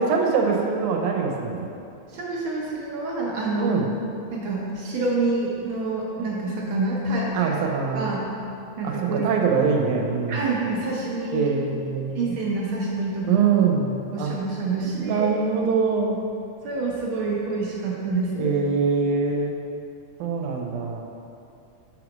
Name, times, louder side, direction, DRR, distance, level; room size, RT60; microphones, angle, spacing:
voice 1, 0.0-1.7 3.6-3.9 7.3-8.1 8.8-10.6 11.3-12.3 13.3-14.3 14.8-16.2 18.4-19.6 20.2-21.0, right 5 dB, 90° right, 1 dB, 2.1 m, -23 dB
voice 2, 2.1-3.7 4.3-7.5 7.9-8.2 8.8-9.4 10.3-11.5 12.1-13.4 14.1-15.3 16.6-18.5, right 3 dB, 70° right, -4 dB, 1.2 m, -27 dB
5.9 x 5.6 x 5.2 m, 2.6 s
omnidirectional pair, 3.4 m